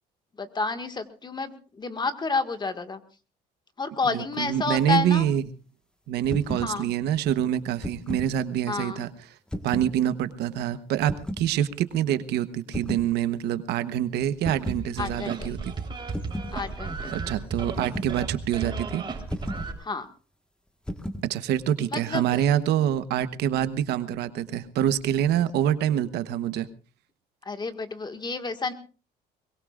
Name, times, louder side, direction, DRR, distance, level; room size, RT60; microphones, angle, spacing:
voice 1, 0.4-3.0 3.8-5.3 6.4-6.9 8.7-9.1 15.0-15.6 16.5-17.1 19.8-20.1 21.9-22.5 27.5-28.7, left 4 dB, 25° left, 8 dB, 1.8 m, -30 dB
voice 2, 4.0-5.5 6.1-9.3 9.6-15.7 17.1-19.0 21.2-26.7, right 11 dB, 80° right, 13 dB, 1.1 m, -26 dB
sound 1, 6.2-6.7 7.6-8.3 9.5-10.0 11.0-11.5 12.7-13.1 14.4-14.9 16.1-16.5 17.8-18.2 19.3-19.7 20.9-21.3, equal, 5° left, 1.5 m, -34 dB
sound 2, 14.7-19.7, right 4 dB, 30° right, 3.8 m, -34 dB
22.5 x 22.5 x 2.5 m, 0.36 s
cardioid pair, 110°, 17 cm